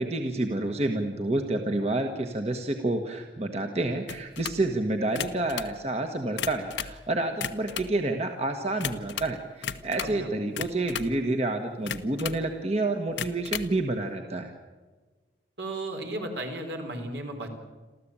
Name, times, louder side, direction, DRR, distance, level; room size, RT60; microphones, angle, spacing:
voice 1, 0.0-14.5, right 2 dB, 35° right, 4 dB, 1.5 m, -29 dB
sound 1, 4.1-4.6 5.0-5.7 6.2-7.0 7.3-7.9 8.8-9.3 9.6-10.2 10.6-11.2 11.9-12.4 13.1-13.7, left 7 dB, 85° left, 1.1 m, -35 dB
voice 2, 15.6-17.5, right 1 dB, 70° right, 4 dB, 4.2 m, -34 dB
28.0 x 14.0 x 8.8 m, 1.3 s
head